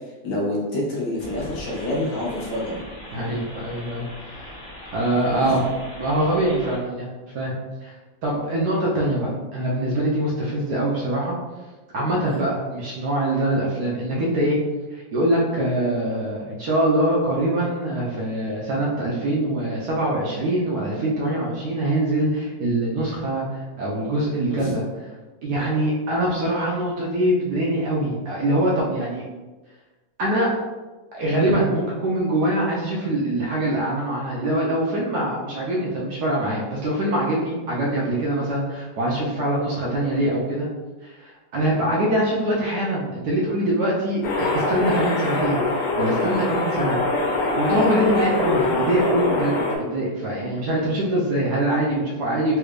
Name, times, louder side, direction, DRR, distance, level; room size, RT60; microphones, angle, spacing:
voice 1, 0.2-2.8 5.3-5.6 12.2-12.4 24.5-24.7 47.7-48.0, left 1 dB, 65° left, -5 dB, 1.4 m, -27 dB
sound 1, 1.2-6.8, left 1 dB, 45° left, 0.7 m, -40 dB
voice 2, 3.1-4.5 4.9-5.6 6.0-7.1 7.3-7.5 7.8-7.9 8.2-11.4 11.9-14.6 14.9-24.8 25.4-29.2 30.2-30.5 31.1-40.7 41.0-45.6 46.0-47.0 47.4-52.6, right 1 dB, 70° right, -4 dB, 1.0 m, -23 dB
sound 2, 44.2-49.8, left 2 dB, 85° left, 1.5 m, -23 dB
3.5 x 3.2 x 2.4 m, 1.2 s
omnidirectional pair, 2.1 m